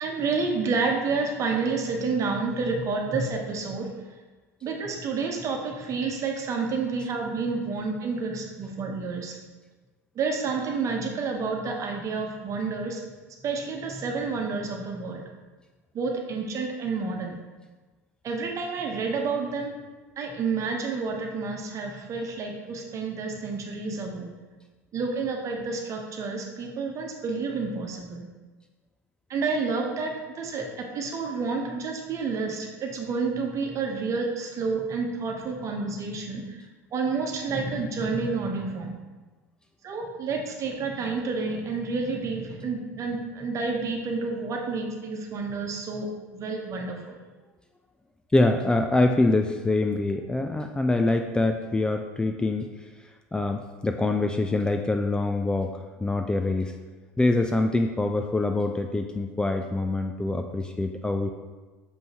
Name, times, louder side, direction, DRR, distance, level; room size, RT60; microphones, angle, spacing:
voice 1, 0.0-3.9 4.6-9.4 10.1-13.0 13.4-15.2 15.9-17.4 18.2-19.7 20.2-24.3 24.9-28.3 29.3-36.6 36.9-39.0 39.8-47.2, right 4 dB, 40° right, 2 dB, 1.1 m, -29 dB
voice 2, 48.3-52.7 53.3-55.7 56.0-56.7 57.2-61.3, left 2 dB, 10° left, 4 dB, 0.4 m, -24 dB
6.3 x 5.3 x 3.0 m, 1.3 s
hypercardioid pair, 75°, 8 cm